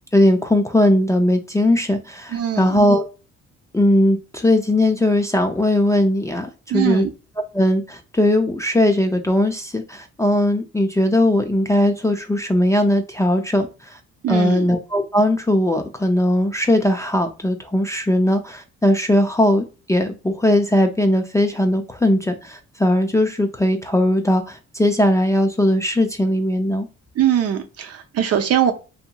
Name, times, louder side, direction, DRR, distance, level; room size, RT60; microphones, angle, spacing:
voice 1, 0.1-3.0 3.7-7.1 7.5-14.0 14.3-26.9, left 1 dB, 10° left, 4 dB, 0.4 m, -19 dB
voice 2, 2.3-2.8 6.7-7.1 14.2-14.7 27.2-28.7, right 10 dB, 55° right, 6 dB, 0.6 m, -21 dB
2.8 x 2.8 x 2.2 m, 0.32 s
cardioid pair, 90°, 30 cm